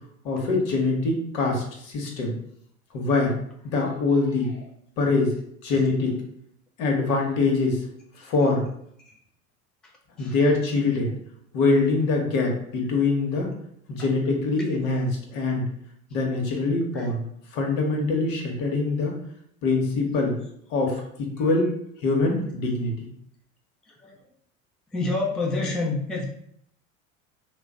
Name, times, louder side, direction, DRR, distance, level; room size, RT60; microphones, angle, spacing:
voice 1, 0.2-2.3 2.9-3.3 3.6-4.6 5.0-5.3 5.6-6.1 6.8-7.9 8.2-8.6 10.2-11.1 11.5-13.5 13.9-15.6 16.1-17.2 17.5-19.2 19.6-20.4 20.7-21.7 22.0-23.1, left 3 dB, 60° left, 1 dB, 1.0 m, -24 dB
voice 2, 9.8-10.4 14.0-14.1 14.6-14.7 16.9-17.1 21.4-21.5 23.8-24.3 24.9-26.3, left 2 dB, ahead, -1 dB, 0.4 m, -30 dB
3.0 x 2.1 x 3.6 m, 0.69 s
hypercardioid pair, 80°, 42 cm